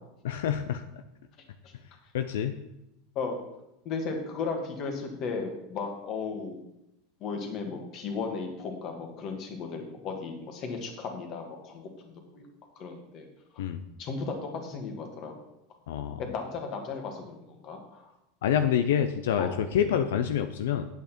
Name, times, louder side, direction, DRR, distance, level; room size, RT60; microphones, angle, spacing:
voice 1, 0.2-0.8 2.1-2.5 13.6-13.8 15.9-16.2 18.4-20.9, left 9 dB, 90° left, 8 dB, 0.6 m, -27 dB
voice 2, 3.9-6.6 7.2-12.5 12.8-13.3 13.5-13.6 14.0-15.4 16.2-18.1 19.4-19.6 19.8-20.0, left 4 dB, 40° left, 4 dB, 1.9 m, -35 dB
9.2 x 8.1 x 4.5 m, 0.88 s
supercardioid pair, 145°, 0 cm